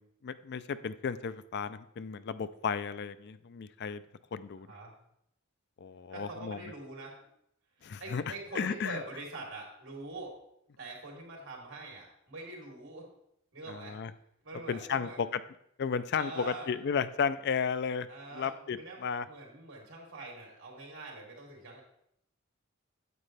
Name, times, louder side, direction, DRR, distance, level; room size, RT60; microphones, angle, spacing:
voice 1, 0.0-4.0 4.3-4.7 5.8-6.6 7.8-9.0 13.7-14.1 14.7-15.4 15.8-18.1 18.3-19.2, left 6 dB, 55° left, 13 dB, 0.4 m, -34 dB
voice 2, 6.1-7.2 7.8-10.3 10.8-13.1 13.5-13.9 14.4-15.2 16.2-16.7 18.1-21.8, right 2 dB, 75° right, -1 dB, 3.5 m, -44 dB
9.4 x 8.3 x 3.4 m, 0.74 s
head